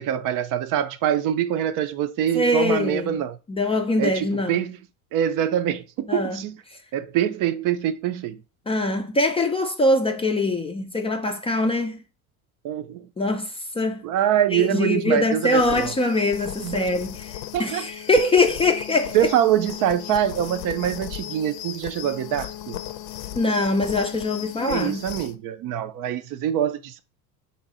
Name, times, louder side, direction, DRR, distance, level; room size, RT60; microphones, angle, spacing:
voice 1, 0.0-3.4 4.0-4.8 5.1-6.6 6.9-8.4 12.6-13.1 14.0-15.9 16.6-16.8 17.5-17.9 19.1-22.8 24.7-27.0, right 10 dB, 50° right, 0.5 m, -24 dB
voice 2, 2.3-3.2 3.5-4.6 6.1-6.4 6.7-6.8 8.7-12.0 13.2-14.0 14.5-19.3 23.3-25.0, left 2 dB, 15° left, 0.4 m, -23 dB
sound 1, 15.4-25.4, left 12 dB, 60° left, 0.6 m, -36 dB
3.9 x 2.7 x 4.1 m
hypercardioid pair, 85°, 44 cm